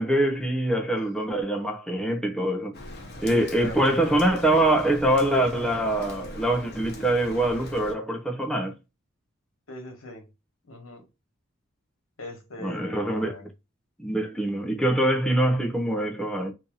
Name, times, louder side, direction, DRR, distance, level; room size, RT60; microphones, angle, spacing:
voice 1, 0.0-2.8 3.2-8.7 12.6-13.3 14.0-16.5, right 1 dB, 5° left, 0.5 m, -24 dB
Rain, 2.7-7.9, left 1 dB, 50° left, 0.8 m, -41 dB
voice 2, 3.3-3.9 9.7-10.3 10.7-11.0 12.2-13.5, left 1 dB, 70° left, 1.2 m, -40 dB
2.7 x 2.6 x 3.7 m
head